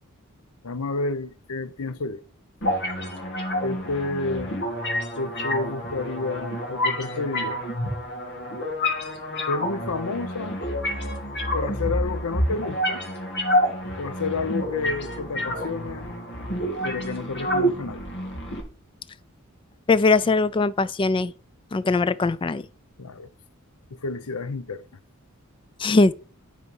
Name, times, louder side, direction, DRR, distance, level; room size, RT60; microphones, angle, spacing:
voice 1, 0.6-2.2 3.6-4.6 5.2-7.6 9.5-10.6 11.5-13.0 14.0-16.1 16.8-18.1 23.0-23.3 23.9-24.8, left 3 dB, 85° left, 0.7 m, -30 dB
sound 1, 2.6-18.6, equal, 55° left, 2.4 m, -28 dB
voice 2, 19.9-21.3 21.7-22.6 25.8-26.1, left 3 dB, 25° left, 0.3 m, -20 dB
11.0 x 4.4 x 5.4 m
head